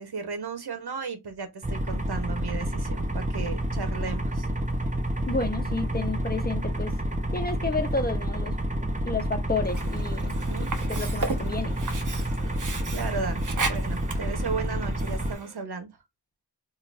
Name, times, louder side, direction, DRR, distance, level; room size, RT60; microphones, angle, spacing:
voice 1, 0.0-4.5 10.3-10.7 12.9-15.9, right 4 dB, 70° right, 1.2 m, -35 dB
sound 1, 1.6-15.3, right 1 dB, 20° right, 0.9 m, -29 dB
voice 2, 5.3-6.9 7.3-8.5 9.0-10.3 10.9-11.8, left 3 dB, 20° left, 1.0 m, -31 dB
Sink (filling or washing), 9.6-15.6, right 4 dB, 50° right, 0.9 m, -36 dB
3.8 x 2.7 x 2.6 m
wide cardioid pair, 65°, 40 cm